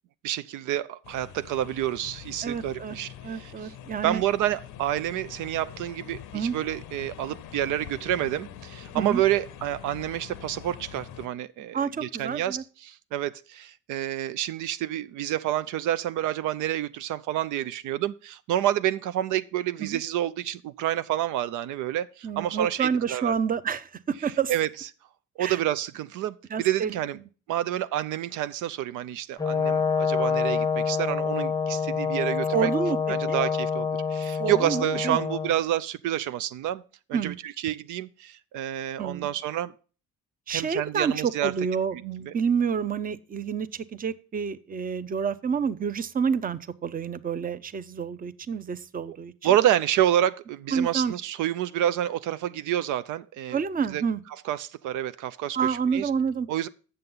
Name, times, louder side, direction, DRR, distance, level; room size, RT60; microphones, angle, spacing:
voice 1, 0.2-3.7 4.0-23.4 24.5-24.7 25.4-27.2 27.5-32.7 33.1-36.8 37.1-39.7 40.5-41.5 42.3-42.4 49.1-49.2 49.4-53.6 53.9-54.0 54.4-56.1 56.5-56.7, right 12 dB, 85° right, 0.5 m, -28 dB
sound 1, 1.0-11.3, left 10 dB, 90° left, 0.7 m, -44 dB
voice 2, 2.4-3.0 3.2-4.2 6.3-6.6 8.9-9.2 11.7-12.6 19.8-20.0 22.2-24.5 25.4-25.6 26.5-27.0 32.5-33.0 33.3-33.4 34.4-35.2 37.1-37.4 39.0-39.3 40.5-49.3 50.7-51.1 53.5-54.2 55.5-56.5, right 6 dB, 30° right, 0.6 m, -28 dB
Brass instrument, 29.4-35.5, left 6 dB, 15° left, 0.6 m, -27 dB
7.6 x 6.8 x 5.4 m
cardioid pair, 90°, 30 cm